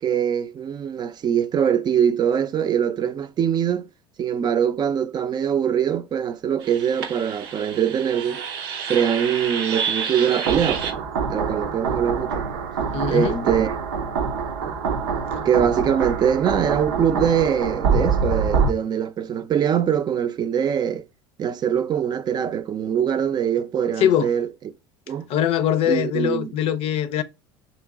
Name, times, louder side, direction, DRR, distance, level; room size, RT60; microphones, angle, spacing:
voice 1, 0.0-3.9 4.2-8.4 8.9-11.0 11.3-12.4 13.1-13.7 15.5-21.0 21.4-24.5 25.1-25.3 25.9-26.5, right 8 dB, 35° right, 0.5 m, -23 dB
sound 1, 6.6-18.7, right 5 dB, 85° right, 0.7 m, -26 dB
voice 2, 12.9-13.4 24.0-24.3 25.3-27.2, left 9 dB, 55° left, 0.6 m, -22 dB
3.0 x 2.9 x 3.5 m
hypercardioid pair, 80°, 12 cm